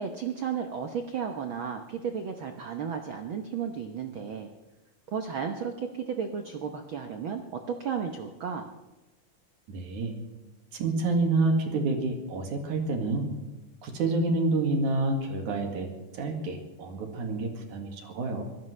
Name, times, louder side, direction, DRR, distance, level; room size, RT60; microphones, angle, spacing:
voice 1, 0.0-4.5 5.1-8.7, right 7 dB, 85° right, 5 dB, 1.1 m, -33 dB
voice 2, 9.7-10.2 10.7-13.3 13.8-18.4, right 3 dB, 70° right, 3 dB, 3.4 m, -28 dB
25.0 x 16.5 x 3.3 m, 1.1 s
omnidirectional pair, 3.7 m